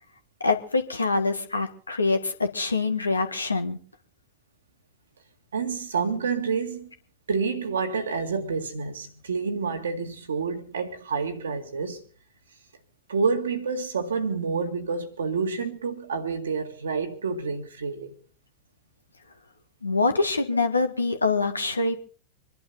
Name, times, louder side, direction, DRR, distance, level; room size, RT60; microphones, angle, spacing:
voice 1, 0.4-3.8 19.8-22.0, left 3 dB, 80° left, 1.7 m, -25 dB
voice 2, 5.5-6.9 7.3-12.0 13.1-18.1, right 5 dB, 70° right, 1.9 m, -28 dB
25.5 x 11.0 x 4.2 m
figure-of-eight pair, 90°, 0 cm